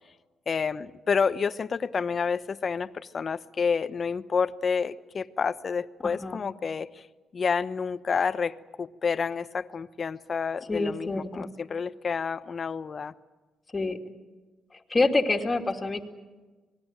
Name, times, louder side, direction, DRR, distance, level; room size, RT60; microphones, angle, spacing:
voice 1, 0.5-7.1 7.3-13.1, left 5 dB, 45° left, 13 dB, 1.0 m, -29 dB
voice 2, 6.0-6.4 10.7-11.5 13.7-14.0 14.9-16.0, left 3 dB, 25° left, 3 dB, 2.7 m, -26 dB
26.0 x 20.0 x 9.0 m, 1.2 s
cardioid pair, 90°, 0 cm